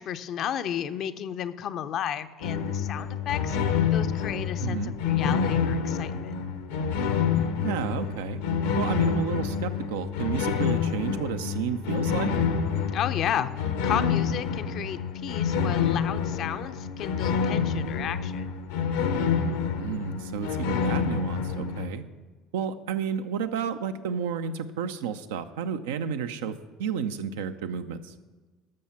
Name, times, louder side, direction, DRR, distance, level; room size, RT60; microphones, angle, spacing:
voice 1, 0.0-3.6 3.9-6.3 12.9-13.5 13.8-18.5, left 9 dB, 55° left, 10 dB, 0.6 m, -33 dB
sound 1, 2.4-21.9, left 6 dB, 80° left, 0.9 m, -27 dB
voice 2, 4.6-4.9 7.6-8.4 8.8-12.3 19.8-22.0 22.5-28.1, right 7 dB, 75° right, 9 dB, 0.6 m, -31 dB
13.0 x 6.4 x 5.7 m, 1.3 s
hypercardioid pair, 65°, 0 cm